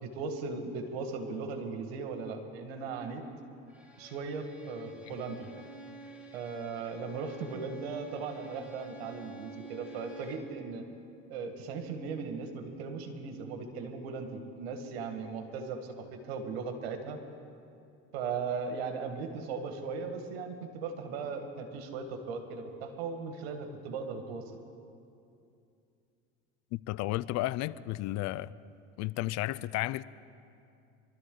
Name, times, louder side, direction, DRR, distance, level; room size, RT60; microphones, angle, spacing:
voice 1, 0.0-3.2 4.0-5.5 6.3-10.8 11.3-17.2 18.1-24.6, right 4 dB, 90° right, 6 dB, 1.7 m, -38 dB
Bowed string instrument, 3.7-10.6, right 3 dB, 5° right, 2.7 m, -49 dB
voice 2, 26.7-28.5 29.0-30.0, left 17 dB, 60° left, 18 dB, 0.5 m, -33 dB
24.0 x 12.5 x 3.9 m, 2.6 s
supercardioid pair, 90°, 30 cm